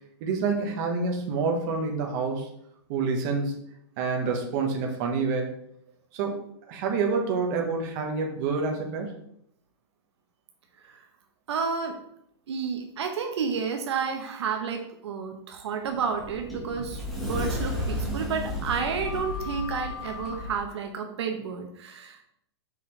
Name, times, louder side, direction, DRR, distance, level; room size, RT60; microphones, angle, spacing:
voice 1, 0.2-2.5 2.9-3.5 4.0-5.6 6.1-6.4 6.7-9.1, right 4 dB, 40° right, 1 dB, 1.2 m, -27 dB
voice 2, 11.5-12.0 12.5-22.2, right 6 dB, 75° right, 4 dB, 0.9 m, -31 dB
Sliding door, 15.8-20.6, left 1 dB, ahead, 1.4 m, -33 dB
5.6 x 5.4 x 3.2 m, 0.72 s
hypercardioid pair, 155°, 14 cm